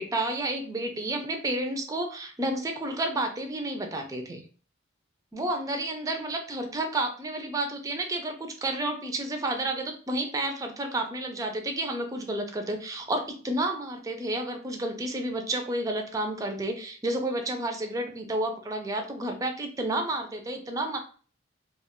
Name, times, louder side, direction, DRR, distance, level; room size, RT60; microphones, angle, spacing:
voice 1, 0.0-4.4 5.3-21.0, right 1 dB, 15° right, 4 dB, 0.3 m, -31 dB
2.2 x 2.2 x 3.5 m, 0.41 s
head